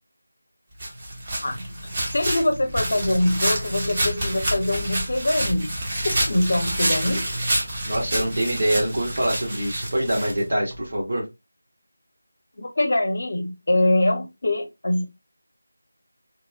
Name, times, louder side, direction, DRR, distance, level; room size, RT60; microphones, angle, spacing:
sound 1, 0.8-10.8, right 1 dB, 25° right, 0.7 m, -28 dB
voice 1, 2.1-5.7 6.0-7.2 12.6-15.0, left 1 dB, 50° left, 0.6 m, -23 dB
voice 2, 7.8-11.3, right 1 dB, 55° right, 1.4 m, -24 dB
2.9 x 2.0 x 2.4 m
figure-of-eight pair, 165°, 0 cm